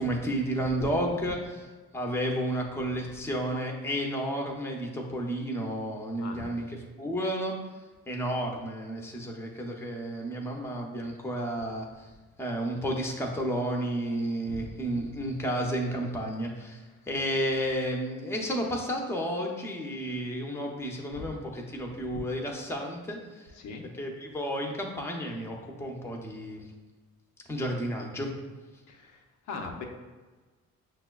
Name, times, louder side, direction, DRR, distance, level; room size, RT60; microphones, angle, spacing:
voice 1, 0.0-1.6 1.9-6.7 7.0-7.5 8.1-12.1 12.4-23.5 24.0-26.7 27.5-28.3, equal, 10° left, 1 dB, 0.6 m, -32 dB
voice 2, 14.4-14.7 21.1-21.3 22.1-22.2 23.5-23.8 28.9-29.2 29.5-29.8, left 4 dB, 90° left, 3 dB, 0.5 m, -40 dB
5.8 x 2.1 x 2.3 m, 1.3 s
cardioid pair, 90°, 30 cm